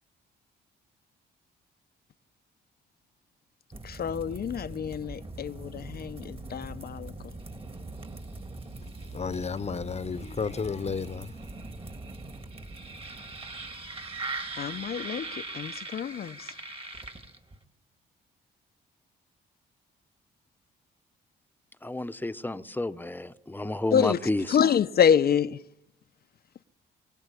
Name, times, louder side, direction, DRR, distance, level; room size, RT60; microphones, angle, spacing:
sound 1, 3.7-17.6, right 2 dB, 30° right, 2.7 m, -41 dB
voice 1, 3.8-7.1 14.6-16.3 23.9-24.2 24.5-25.6, left 8 dB, 55° left, 0.9 m, -26 dB
voice 2, 9.1-11.3, left 5 dB, 35° left, 1.1 m, -32 dB
voice 3, 21.8-24.6, left 1 dB, 10° left, 1.1 m, -31 dB
23.5 x 17.5 x 8.4 m
supercardioid pair, 70°, 19 cm